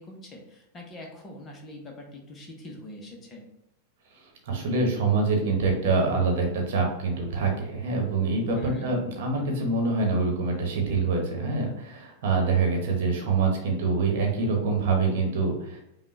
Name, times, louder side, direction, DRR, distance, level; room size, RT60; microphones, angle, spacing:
voice 1, 0.0-3.4 8.6-8.9, left 1 dB, 25° left, 1 dB, 1.0 m, -42 dB
voice 2, 4.2-15.8, right 3 dB, 55° right, 1 dB, 1.1 m, -25 dB
5.4 x 2.4 x 3.2 m, 0.87 s
figure-of-eight pair, 90°, 0 cm